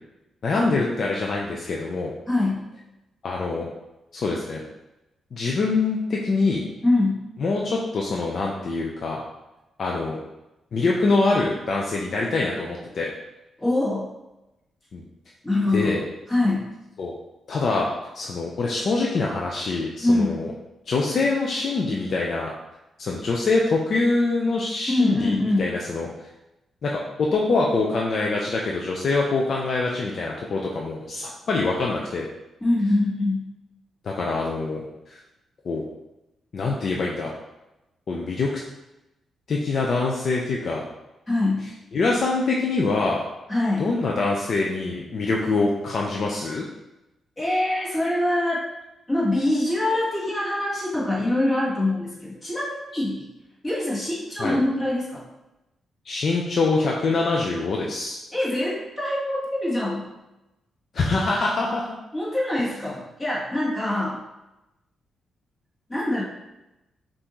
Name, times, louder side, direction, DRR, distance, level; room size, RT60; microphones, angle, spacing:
voice 1, 0.4-2.1 3.2-3.7 4.1-4.6 5.3-6.6 7.4-9.2 9.8-10.2 10.7-13.1 14.9-15.0 15.7-16.0 17.0-17.1 17.5-17.9 18.1-20.5 20.9-22.5 23.0-26.1 26.8-32.3 34.0-35.2 35.6-35.8 36.5-37.3 38.1-38.6 39.5-40.8 41.9-43.2 43.8-46.6 54.4-54.6 56.0-58.2 60.9-61.9, left 3 dB, 50° left, -2 dB, 0.5 m, -24 dB
voice 2, 2.3-2.6 6.8-7.2 13.6-14.1 15.4-16.0 16.3-16.7 20.0-20.4 24.9-25.6 32.6-33.5 41.3-41.7 43.5-43.9 47.4-48.6 49.1-53.3 53.6-55.2 58.3-60.1 62.1-64.2 65.9-66.2, left 1 dB, 20° left, -6 dB, 1.5 m, -24 dB
5.6 x 2.6 x 3.0 m, 0.96 s
cardioid pair, 115°, 0 cm